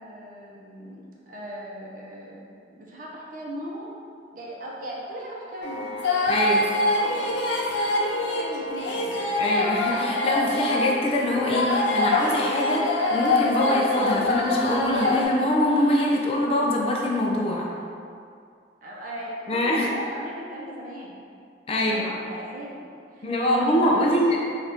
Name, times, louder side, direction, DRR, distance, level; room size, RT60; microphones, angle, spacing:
voice 1, 0.0-3.9 4.3-6.0 6.4-7.4 7.9-9.1 18.8-21.2 21.7-24.4, equal, 50° right, -4 dB, 0.7 m, -38 dB
sound 1, 5.6-15.2, left 2 dB, 80° left, 0.5 m, -25 dB
voice 2, 6.3-6.6 9.4-17.7 19.5-19.9 21.7-22.1 23.2-24.4, left 1 dB, 30° left, -2 dB, 0.4 m, -24 dB
4.1 x 2.4 x 3.4 m, 2.4 s
head